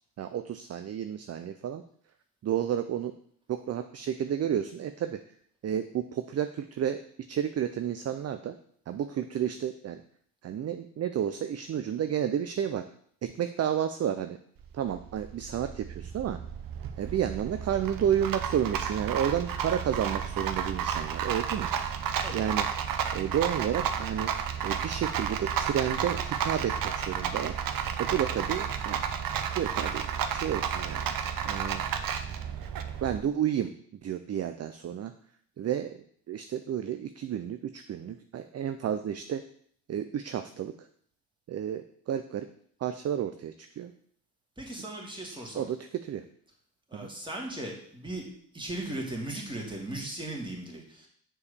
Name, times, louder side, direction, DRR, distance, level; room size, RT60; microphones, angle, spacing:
voice 1, 0.2-1.8 2.4-3.1 3.5-5.2 5.6-7.0 7.3-8.5 8.9-10.0 10.4-12.8 13.2-14.4 14.7-16.4 17.0-22.0 22.3-22.7 23.1-24.3 24.6-27.6 28.0-29.0 29.5-30.1 30.3-31.1 31.4-31.8 33.0-33.7 34.0-35.1 35.6-39.4 39.9-40.9 41.5-42.5 42.8-43.9 44.8-44.9 45.5-46.2 46.9-47.1, right 9 dB, 45° right, 9 dB, 0.6 m, -31 dB
Rattle, 14.6-33.2, right 8 dB, 65° right, 1.0 m, -32 dB
voice 2, 44.6-45.7 46.9-48.3 48.5-51.1, right 1 dB, 15° right, -1 dB, 2.7 m, -37 dB
7.0 x 4.7 x 6.8 m, 0.62 s
cardioid pair, 95°, 37 cm